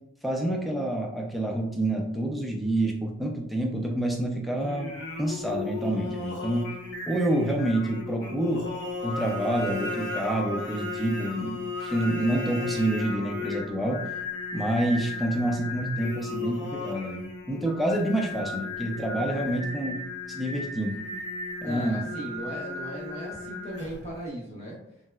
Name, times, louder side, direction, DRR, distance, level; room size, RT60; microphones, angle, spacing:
voice 1, 0.2-4.9 5.2-6.7 7.1-8.7 9.0-14.0 14.5-21.0 21.6-22.0, right 1 dB, ahead, 0 dB, 0.3 m, -28 dB
Singing, 4.5-24.2, left 3 dB, 60° left, 0.5 m, -35 dB
voice 2, 21.6-24.8, right 1 dB, 35° left, -3 dB, 0.8 m, -37 dB
3.1 x 2.8 x 2.3 m, 0.78 s
head